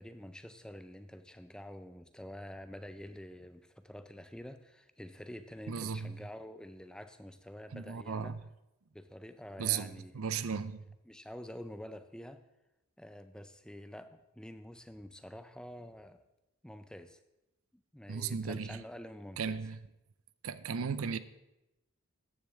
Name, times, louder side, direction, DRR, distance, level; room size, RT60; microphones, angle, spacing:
voice 1, 0.0-8.4 8.9-10.5 11.1-12.4 13.0-16.2 16.6-17.2 17.9-19.6, equal, 5° left, 0.4 m, -48 dB
voice 2, 5.7-6.2 7.7-8.4 9.6-10.8 18.1-18.8 19.4-19.8 20.4-21.2, right 6 dB, 80° right, 0.6 m, -35 dB
14.0 x 9.8 x 3.5 m
head